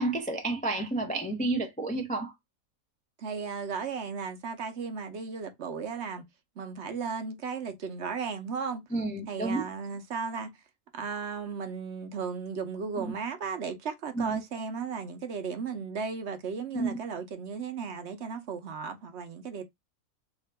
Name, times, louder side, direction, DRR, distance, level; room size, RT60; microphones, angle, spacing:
voice 1, 0.0-2.3 8.9-9.6 13.0-13.1 14.1-14.4 16.7-17.0, right 2 dB, 10° left, 0.4 m, -30 dB
voice 2, 3.2-6.2 6.6-8.8 9.3-10.5 10.9-19.6, right 5 dB, 60° right, 0.9 m, -35 dB
3.6 x 2.4 x 3.3 m
omnidirectional pair, 1.5 m